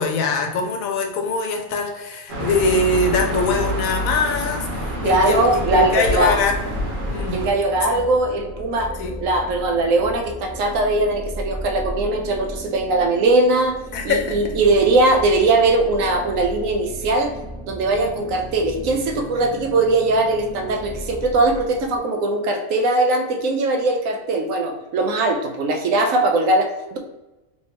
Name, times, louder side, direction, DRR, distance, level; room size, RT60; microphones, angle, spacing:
voice 1, 0.0-6.5 7.1-7.4 7.9-8.0 9.0-9.1 13.9-14.4, left 3 dB, 85° left, 3 dB, 1.1 m, -23 dB
sound 1, 2.3-7.5, equal, 40° right, 1.1 m, -27 dB
sound 2, 4.5-22.0, equal, ahead, 0.4 m, -35 dB
voice 2, 5.0-6.4 7.3-13.8 14.0-17.4 17.7-27.0, right 2 dB, 75° right, 4 dB, 1.0 m, -20 dB
3.3 x 3.1 x 2.9 m, 1.0 s
omnidirectional pair, 1.4 m